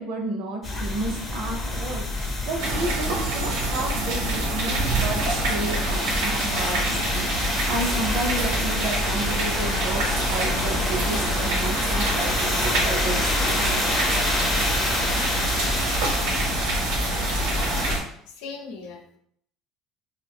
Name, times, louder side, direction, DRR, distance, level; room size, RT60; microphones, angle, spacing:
voice 1, 0.0-13.5, right 2 dB, 60° right, 3 dB, 0.7 m, -32 dB
sound 1, 0.6-17.9, left 2 dB, 15° left, 0.5 m, -27 dB
sound 2, 2.6-18.0, right 3 dB, 85° right, 1.1 m, -27 dB
voice 2, 18.3-19.2, left 4 dB, 90° left, 3 dB, 0.6 m, -39 dB
2.7 x 2.5 x 3.5 m, 0.66 s
cardioid pair, 175°, 0 cm